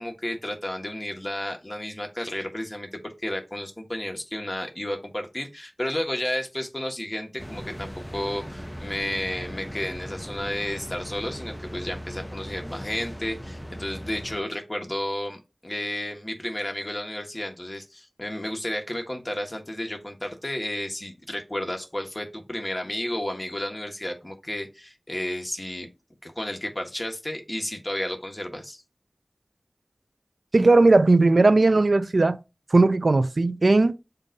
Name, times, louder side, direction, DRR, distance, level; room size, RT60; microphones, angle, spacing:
voice 1, 0.0-25.9 26.2-28.8, left 1 dB, 25° left, 1.6 m, -32 dB
sound 1, 7.4-14.4, equal, 5° left, 0.6 m, -38 dB
voice 2, 30.5-32.4 32.7-33.9, right 2 dB, 80° right, 0.5 m, -18 dB
7.1 x 2.6 x 5.3 m
wide cardioid pair, 45°, 0 cm